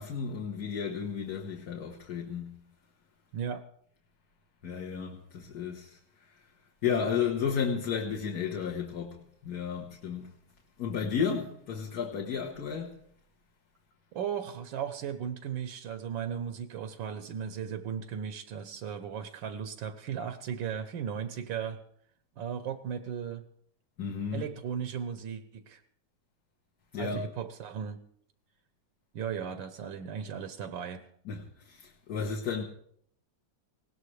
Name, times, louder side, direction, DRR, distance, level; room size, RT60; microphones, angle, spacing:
voice 1, 0.0-2.6 4.6-6.0 6.8-10.3 10.8-13.0 24.0-24.5 26.9-27.2 31.3-32.6, left 7 dB, 55° left, 1.7 m, -33 dB
voice 2, 14.1-21.8 22.4-23.4 24.3-25.8 26.9-28.0 29.1-31.1, right 8 dB, 85° right, 1.6 m, -36 dB
20.0 x 17.5 x 3.2 m
omnidirectional pair, 2.0 m